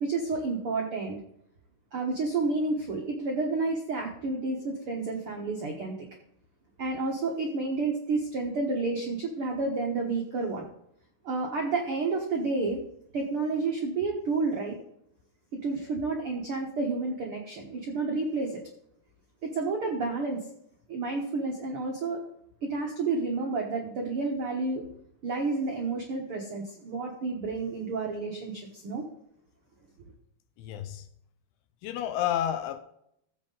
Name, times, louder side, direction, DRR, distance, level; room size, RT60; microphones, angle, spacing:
voice 1, 0.0-1.2 1.9-5.9 6.8-10.7 11.2-12.8 13.1-14.8 15.6-18.6 19.4-20.4 20.9-22.2 22.6-24.8 25.2-29.0, right 3 dB, 70° right, 1 dB, 1.3 m, -30 dB
voice 2, 30.6-31.1 31.8-32.8, left 11 dB, 85° left, 9 dB, 2.6 m, -30 dB
15.0 x 7.5 x 3.9 m, 0.74 s
omnidirectional pair, 4.5 m